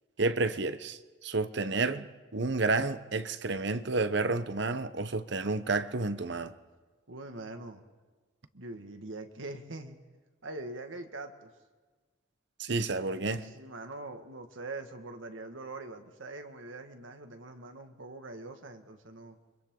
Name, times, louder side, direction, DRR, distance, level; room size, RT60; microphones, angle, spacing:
voice 1, 0.2-2.1 2.3-6.5 12.6-13.5, right 3 dB, 60° right, 0.9 m, -30 dB
voice 2, 7.1-7.8 8.5-10.0 10.4-11.5 13.4-19.4, right 2 dB, 85° right, 1.8 m, -43 dB
30.0 x 24.5 x 3.9 m
head